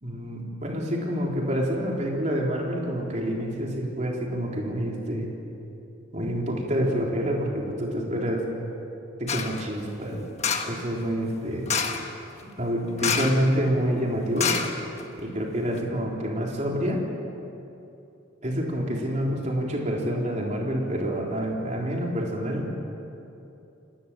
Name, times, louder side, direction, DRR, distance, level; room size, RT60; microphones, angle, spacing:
voice 1, 0.0-5.3 6.1-8.4 9.2-10.3 10.6-11.7 12.6-14.5 15.2-17.0 18.4-22.7, equal, 35° right, -1 dB, 4.0 m, -27 dB
sound 1, 9.3-9.6 10.4-10.8 11.7-12.1 13.0-13.5 13.7-13.8 14.4-15.2 15.7-15.8, left 6 dB, 35° left, 1.5 m, -27 dB
29.5 x 19.0 x 7.6 m, 2.8 s
head